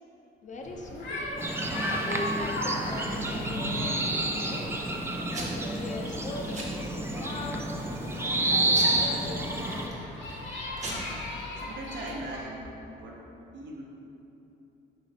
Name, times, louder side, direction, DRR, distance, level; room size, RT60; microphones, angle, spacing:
voice 1, 0.4-1.3 1.9-4.8 5.4-7.6 8.1-10.0, left 2 dB, 40° left, 1 dB, 0.5 m, -40 dB
sound 1, 0.6-12.4, left 1 dB, 70° left, 1.1 m, -38 dB
sound 2, 1.4-9.9, right 2 dB, 10° right, 0.3 m, -30 dB
Packing tape duct tape / Tearing, 2.7-3.9 4.4-4.9 5.3-5.8 6.1-6.3 6.5-7.2 7.7-8.1 8.7-10.0 10.5-10.6 10.8-10.9, right 1 dB, 35° right, 0.9 m, -39 dB
voice 2, 11.6-13.3 13.5-13.8, right 1 dB, 70° right, -1 dB, 0.7 m, -40 dB
3.9 x 3.2 x 4.1 m, 3.0 s
cardioid pair, 90°, 20 cm